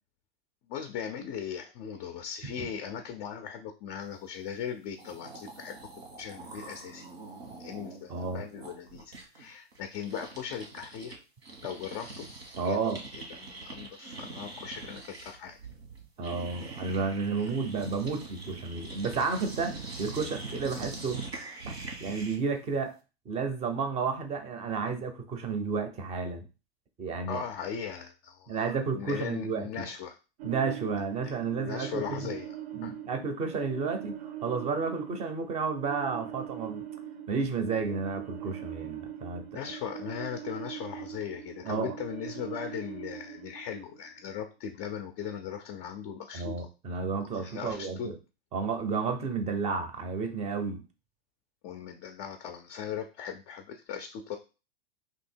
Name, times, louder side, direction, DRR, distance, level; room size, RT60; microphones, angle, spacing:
voice 1, 0.7-5.9 6.2-7.1 7.6-11.2 11.6-12.3 12.6-12.8 13.1-15.6 27.3-28.6 28.9-30.2 31.6-32.5 32.8-32.9 39.5-46.7 47.3-48.1 51.6-54.4, left 8 dB, 30° left, 5 dB, 0.4 m, -38 dB
sound 1, 4.7-4.8 4.9-11.2 11.4-22.5, right 3 dB, 85° right, 1.5 m, -43 dB
voice 2, 8.1-8.4 12.6-13.0 16.2-21.2 21.7-22.9 23.3-26.5 27.0-27.4 28.5-29.8 30.4-32.3 32.7-36.9 37.3-39.4 41.6-41.9 46.3-48.1 48.5-50.8, right 5 dB, 20° right, 8 dB, 0.6 m, -32 dB
sound 2, 30.4-44.5, right 11 dB, 65° right, 0.7 m, -42 dB
2.8 x 2.7 x 4.4 m, 0.32 s
hypercardioid pair, 125°, 31 cm